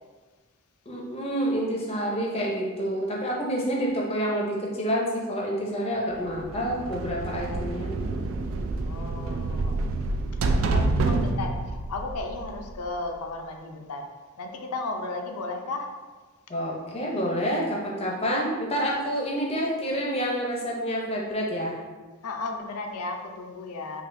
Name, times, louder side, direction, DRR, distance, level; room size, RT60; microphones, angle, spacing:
voice 1, 0.9-8.0 16.5-21.8, equal, 25° left, -2 dB, 0.6 m, -28 dB
sound 1, 6.3-13.1, right 2 dB, 65° right, 0.3 m, -28 dB
voice 2, 8.8-14.1 14.4-15.9 22.2-24.0, left 3 dB, 80° left, 4 dB, 0.5 m, -35 dB
5.5 x 2.3 x 2.6 m, 1.4 s
head